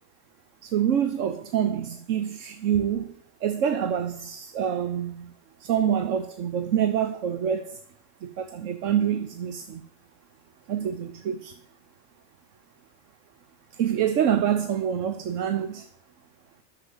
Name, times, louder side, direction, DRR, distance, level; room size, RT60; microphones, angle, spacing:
voice 1, 0.6-5.3 5.6-7.8 8.2-9.8 10.7-11.5 13.7-15.9, right 9 dB, 75° right, 1.1 m, -26 dB
12.0 x 7.1 x 7.9 m
omnidirectional pair, 1.3 m